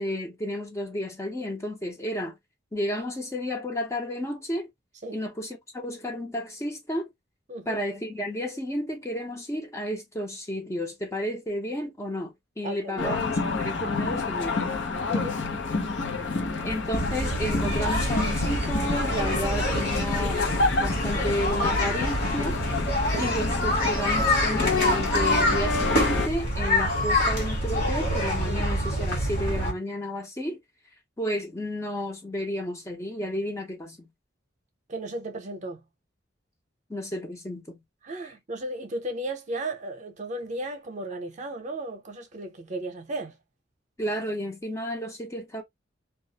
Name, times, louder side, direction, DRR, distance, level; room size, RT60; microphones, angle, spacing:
voice 1, 0.0-2.3 2.7-4.7 5.1-7.1 7.7-14.7 16.6-22.6 23.2-30.6 31.2-34.1 36.9-37.8 44.0-45.6, equal, 15° left, 0.5 m, -32 dB
voice 2, 7.5-7.8 12.6-13.1 15.1-15.4 23.1-23.3 34.9-35.8 38.0-43.4, right 1 dB, 40° right, 0.6 m, -35 dB
sound 1, 13.0-26.3, left 3 dB, 90° left, 0.7 m, -29 dB
sound 2, 16.9-29.7, left 1 dB, 55° left, 1.2 m, -26 dB
2.3 x 2.0 x 2.7 m
head